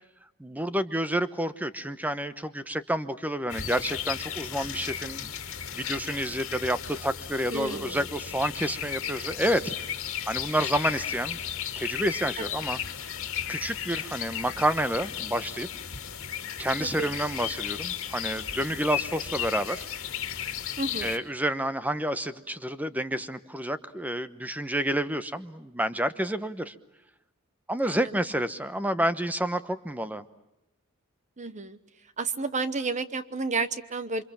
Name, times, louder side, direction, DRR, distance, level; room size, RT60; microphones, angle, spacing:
voice 1, 0.4-5.3 5.7-9.7 10.3-11.4 11.8-12.8 13.5-15.7 16.6-19.9 21.0-26.7 27.7-30.3, right 1 dB, 10° right, 12 dB, 1.0 m, -29 dB
sound 1, 3.5-21.2, left 9 dB, 65° left, 2.4 m, -35 dB
voice 2, 7.5-8.0 12.4-12.5 16.8-17.1 20.8-21.2 27.8-28.1 31.4-31.8 32.2-34.2, right 3 dB, 35° right, 13 dB, 1.0 m, -31 dB
28.5 x 25.0 x 7.4 m, 0.94 s
head